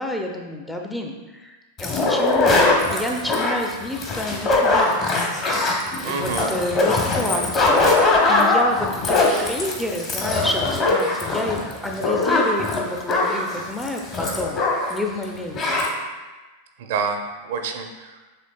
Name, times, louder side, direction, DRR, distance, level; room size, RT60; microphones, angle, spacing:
voice 1, 0.0-5.0 6.0-14.6 14.9-15.8, left 1 dB, 5° left, 1 dB, 0.4 m, -29 dB
sound 1, 1.8-15.0 15.2-15.3 15.5-15.9, left 2 dB, 30° left, 0.9 m, -21 dB
voice 2, 6.0-6.5 16.8-18.2, right 5 dB, 55° right, 5 dB, 0.5 m, -27 dB
7.4 x 3.2 x 2.2 m, 1.2 s
figure-of-eight pair, 90°, 0 cm